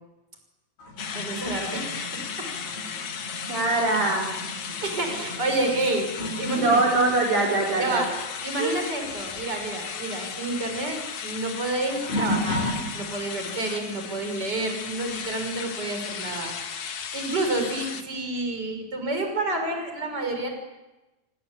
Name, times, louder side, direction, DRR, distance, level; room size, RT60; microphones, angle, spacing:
sound 1, 0.8-8.8 9.0-13.4 14.0-14.3 16.6-16.7 17.5-17.6, left 1 dB, 90° left, 9.2 m, -35 dB
sound 2, 1.0-18.0, left 7 dB, 50° left, 2.0 m, -36 dB
voice 1, 1.1-2.1 2.4-2.5 4.8-6.1 6.4-6.8 7.4-7.5 7.8-8.1 8.4-12.7 12.9-16.5 17.1-20.5, right 2 dB, 25° right, 4 dB, 6.5 m, -29 dB
voice 2, 3.5-4.3 6.5-8.2 8.6-8.7, right 2 dB, 50° right, -2 dB, 5.4 m, -23 dB
27.5 x 24.5 x 8.7 m, 1.1 s
omnidirectional pair, 4.5 m